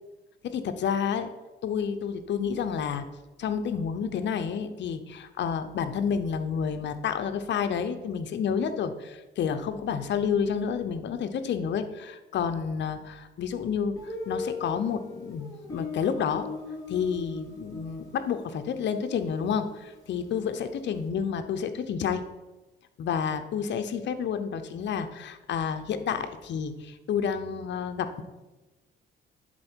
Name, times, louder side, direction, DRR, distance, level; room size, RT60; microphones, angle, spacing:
voice 1, 0.4-1.3 1.6-3.1 3.4-16.5 16.9-22.2 23.0-28.2, left 7 dB, 65° left, 9 dB, 0.8 m, -30 dB
Guitar, 14.0-20.6, left 3 dB, 15° left, 2.9 m, -40 dB
10.5 x 4.4 x 4.5 m, 1.1 s
cardioid pair, 90°, 20 cm